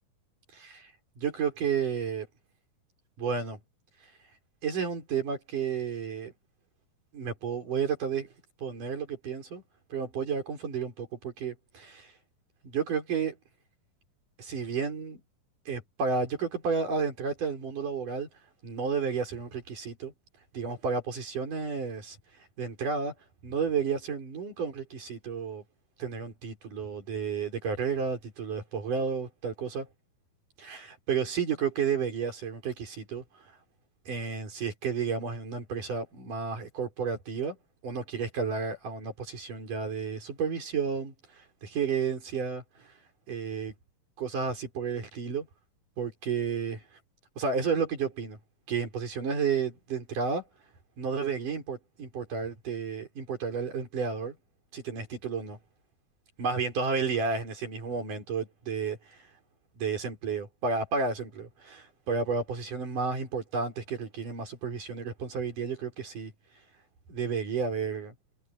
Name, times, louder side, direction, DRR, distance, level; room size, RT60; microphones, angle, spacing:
voice 1, 0.5-2.3 3.2-3.6 4.6-6.3 7.1-8.3 8.6-9.6 9.9-12.1 12.6-13.4 14.4-15.2 15.7-18.3 18.6-20.1 20.5-22.2 22.6-23.1 23.4-25.6 26.0-29.9 30.6-33.2 34.1-37.6 37.8-42.6 43.3-43.7 44.2-45.5 46.0-46.8 47.4-48.4 48.7-50.4 51.0-54.3 54.7-55.6 56.4-59.3 59.8-66.3 67.1-68.1, right 5 dB, 70° right, 6.6 m, -32 dB
omnidirectional pair, 3.9 m